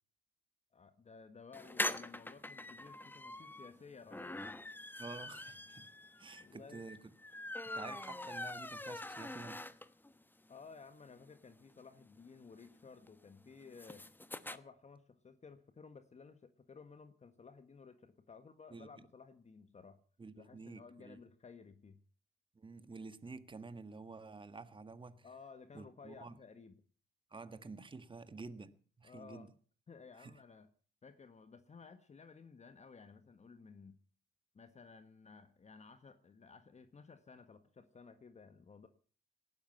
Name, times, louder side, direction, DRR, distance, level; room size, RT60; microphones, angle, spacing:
voice 1, 0.7-4.7 6.3-6.8 10.5-14.1 14.5-20.0 20.4-22.0 25.2-26.8 29.0-29.5 29.9-30.7 31.0-34.0 34.5-38.9, left 5 dB, 35° left, 1.5 m, -56 dB
sound 1, 1.5-10.1 10.5-10.6 10.8-10.9 11.2-14.6, left 1 dB, 10° left, 1.1 m, -44 dB
voice 2, 5.0-5.9 6.2-7.0 7.7-9.6 18.7-19.0 20.2-21.2 22.5-25.3 25.7-26.3 27.3-29.5 30.2-30.4, right 4 dB, 25° right, 1.6 m, -50 dB
18.5 x 12.0 x 5.6 m
cardioid pair, 90°, 20 cm